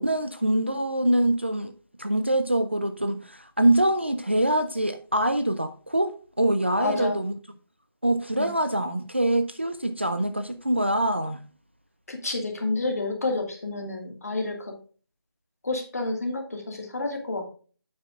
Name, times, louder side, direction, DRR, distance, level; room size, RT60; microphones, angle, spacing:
voice 1, 0.0-1.7 2.0-7.3 8.0-11.4, right 1 dB, 30° right, 0.4 m, -24 dB
voice 2, 6.8-7.2 8.4-8.5 12.1-14.7 15.6-17.5, left 2 dB, 40° left, 1.9 m, -29 dB
8.5 x 8.4 x 2.4 m
figure-of-eight pair, 180°, 13 cm